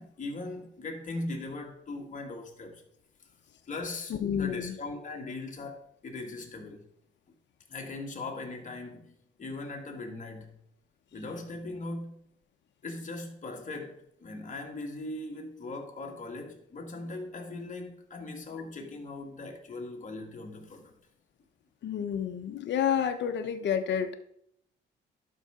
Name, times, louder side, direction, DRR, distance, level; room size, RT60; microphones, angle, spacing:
voice 1, 0.0-2.8 3.7-6.9 7.7-10.6 11.1-12.3 12.8-21.0, left 2 dB, 40° left, 2.1 m, -39 dB
voice 2, 4.2-4.7 21.8-24.1, left 8 dB, 65° left, 0.9 m, -29 dB
11.5 x 5.6 x 3.7 m
cardioid pair, 90°, 20 cm